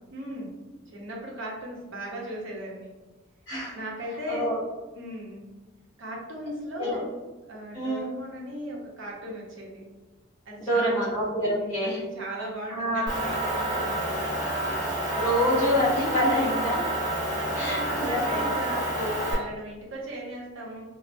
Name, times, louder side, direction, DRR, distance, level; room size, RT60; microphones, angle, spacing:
voice 1, 0.1-0.6 0.9-2.9 3.7-4.5 4.9-5.5 6.0-7.1 7.4-9.8 10.5-11.1 11.4-14.9 17.3-20.9, equal, 70° right, -3 dB, 0.7 m, -37 dB
voice 2, 3.5-3.8 4.3-4.6 6.8-6.9 7.7-8.0 10.6-12.0 12.7-13.1 15.1-16.8 17.5-18.4, equal, 15° left, -11 dB, 1.0 m, -26 dB
Motor vehicle (road) / Engine, 13.1-19.3, right 1 dB, 20° right, 0.8 m, -29 dB
3.1 x 2.0 x 2.5 m, 1.1 s
head